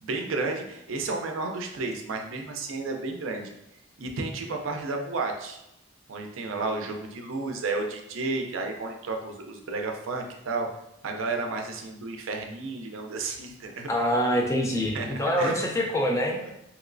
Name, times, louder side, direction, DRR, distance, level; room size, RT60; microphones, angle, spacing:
voice 1, 0.0-3.5 4.0-5.6 6.1-10.7 11.0-13.9 14.9-15.1 15.3-15.6, right 3 dB, 85° right, 3 dB, 0.5 m, -32 dB
voice 2, 13.9-16.4, equal, 15° left, 0 dB, 0.4 m, -25 dB
3.0 x 2.9 x 2.5 m, 0.84 s
head